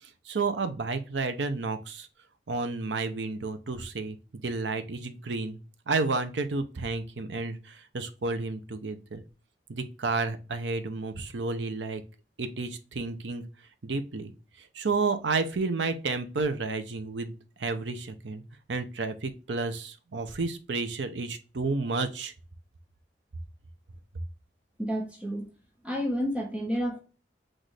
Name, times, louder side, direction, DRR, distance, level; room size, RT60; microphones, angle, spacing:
voice 1, 0.0-2.1 2.5-4.2 4.4-5.6 5.9-9.2 9.7-12.0 12.4-13.4 13.8-14.3 14.6-17.3 17.6-18.4 18.7-22.3, right 3 dB, 90° right, 0.7 m, -31 dB
voice 2, 24.8-25.5 25.8-27.0, equal, 5° right, 1.2 m, -30 dB
6.1 x 2.6 x 3.2 m
head